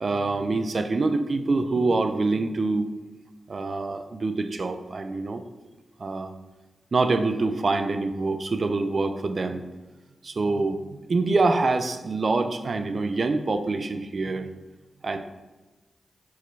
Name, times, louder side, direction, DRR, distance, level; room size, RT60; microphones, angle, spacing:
voice 1, 0.0-2.9 3.5-5.4 6.0-6.3 6.9-9.6 10.2-10.8 11.0-14.5 15.0-15.2, right 3 dB, 55° right, 8 dB, 0.6 m, -25 dB
5.0 x 4.2 x 5.4 m, 1.1 s
supercardioid pair, 40°, 0 cm